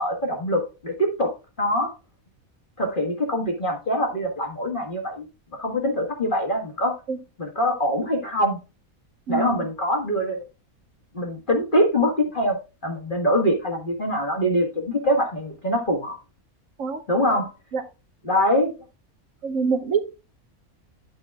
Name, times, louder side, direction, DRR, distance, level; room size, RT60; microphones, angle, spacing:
voice 1, 0.0-1.3 1.6-1.9 2.8-5.2 5.5-6.9 7.4-8.6 9.3-10.4 11.1-12.6 12.8-16.2 17.1-17.5 18.2-18.7, equal, 35° left, 1 dB, 1.6 m, -23 dB
voice 2, 9.3-9.6 16.8-17.0 17.3-17.4 17.7-17.8 19.4-20.1, right 5 dB, 65° right, 6 dB, 1.2 m, -25 dB
10.5 x 8.8 x 2.3 m, 0.29 s
omnidirectional pair, 1.5 m